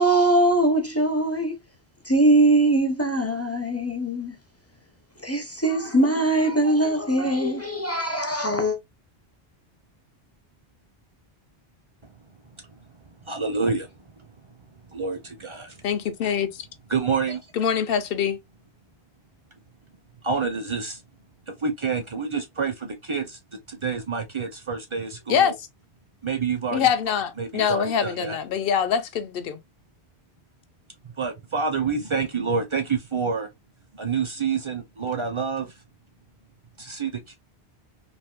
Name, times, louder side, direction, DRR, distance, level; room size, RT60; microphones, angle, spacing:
voice 1, 0.0-1.6 2.1-4.3 5.2-8.8, right 1 dB, 20° left, 0.4 m, -21 dB
voice 2, 13.2-14.3 14.7-15.8 16.9-17.4 20.2-21.0 21.6-23.4 23.7-25.5 26.2-26.9 27.4-28.4 31.0-33.5 33.9-35.7 36.8-37.4, right 5 dB, 40° right, 0.4 m, -28 dB
voice 3, 15.8-16.7 17.5-18.4 25.3-25.5 26.7-29.6, left 8 dB, 65° left, 0.7 m, -24 dB
3.4 x 2.6 x 2.2 m
omnidirectional pair, 1.1 m